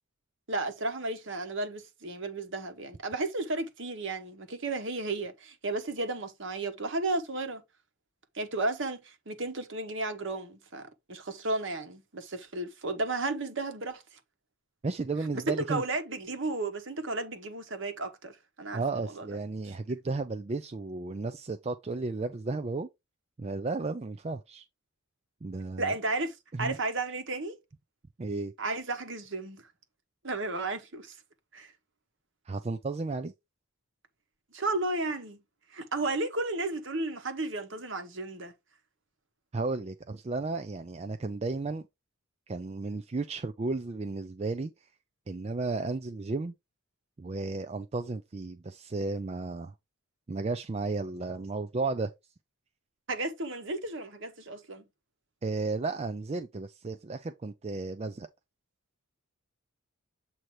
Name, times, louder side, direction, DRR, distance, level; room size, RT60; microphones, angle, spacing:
voice 1, 0.5-7.6 8.3-14.0 15.5-19.3 25.8-27.6 28.6-29.6 30.2-31.2 31.5-31.7 34.5-35.4 35.7-38.5 53.1-54.9, right 2 dB, 55° right, 1.1 m, -33 dB
voice 2, 14.8-15.8 18.7-22.9 23.4-24.6 25.4-25.9 26.5-26.8 28.2-28.5 32.5-33.3 39.5-41.8 42.5-44.7 45.3-46.5 47.2-49.7 50.3-52.1 55.4-58.3, right 3 dB, 30° right, 0.4 m, -33 dB
7.7 x 2.8 x 4.7 m
head